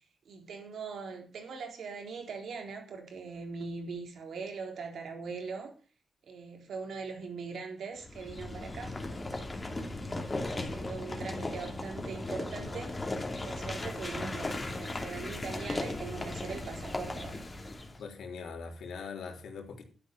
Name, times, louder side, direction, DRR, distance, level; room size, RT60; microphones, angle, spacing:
voice 1, 0.0-5.7 6.2-8.9 9.3-10.2 10.5-12.9 13.4-17.4, right 4 dB, 80° right, 3.9 m, -41 dB
sound 1, 8.0-18.0, left 2 dB, 20° left, 2.8 m, -37 dB
voice 2, 18.0-19.9, left 5 dB, 85° left, 3.4 m, -41 dB
12.5 x 10.0 x 6.0 m
cardioid pair, 110°, 0 cm